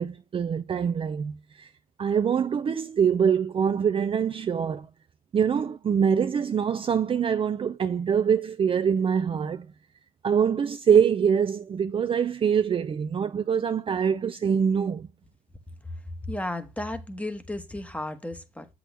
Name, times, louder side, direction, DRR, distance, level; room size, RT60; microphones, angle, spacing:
voice 1, 0.0-1.7 2.0-4.9 5.3-9.7 10.2-15.1, right 7 dB, 30° right, 0.5 m, -24 dB
voice 2, 16.3-18.7, left 1 dB, 10° left, 1.2 m, -34 dB
7.6 x 6.2 x 3.4 m
cardioid pair, 110°, 17 cm